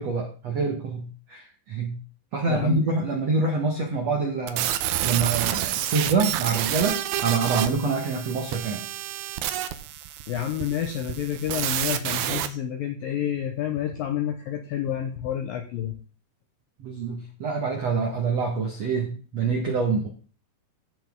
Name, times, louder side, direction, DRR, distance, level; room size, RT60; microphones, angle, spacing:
voice 1, 0.0-2.0 2.3-4.7 5.0-8.9 16.8-20.1, right 4 dB, 70° right, 1 dB, 1.6 m, -26 dB
voice 2, 2.5-2.8 10.3-16.0, left 10 dB, 80° left, 5 dB, 2.1 m, -29 dB
sound 1, 4.5-12.5, right 12 dB, 85° right, 2.1 m, -29 dB
15.5 x 6.0 x 3.7 m, 0.38 s
omnidirectional pair, 5.4 m